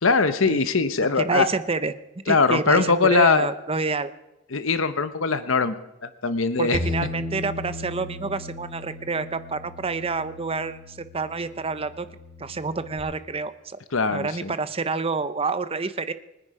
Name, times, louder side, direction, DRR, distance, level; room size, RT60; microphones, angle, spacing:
voice 1, 0.0-1.5 2.3-3.5 4.5-5.8 6.2-6.8 13.9-14.5, left 4 dB, 70° left, 11 dB, 1.0 m, -21 dB
voice 2, 1.2-1.9 2.3-4.1 6.6-12.1 12.4-13.8 14.1-16.1, right 4 dB, 30° right, 13 dB, 0.7 m, -28 dB
Bass guitar, 6.7-13.0, left 2 dB, 15° left, 3.1 m, -36 dB
24.5 x 10.0 x 4.9 m, 0.97 s
head